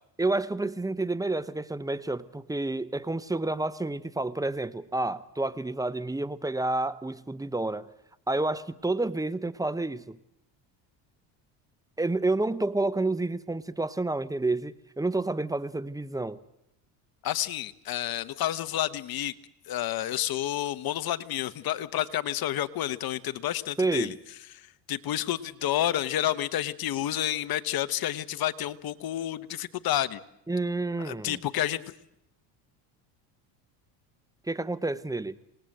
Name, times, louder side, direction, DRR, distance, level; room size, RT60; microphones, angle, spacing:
voice 1, 0.2-7.9 8.3-10.2 12.0-16.4 23.8-24.2 30.5-31.4 34.5-35.3, right 2 dB, 5° right, 16 dB, 0.8 m, -29 dB
voice 2, 17.2-19.3 19.6-24.1 24.5-30.2 31.0-31.8, left 12 dB, 50° left, 15 dB, 1.1 m, -30 dB
26.5 x 19.0 x 7.8 m, 0.81 s
supercardioid pair, 95°, 47 cm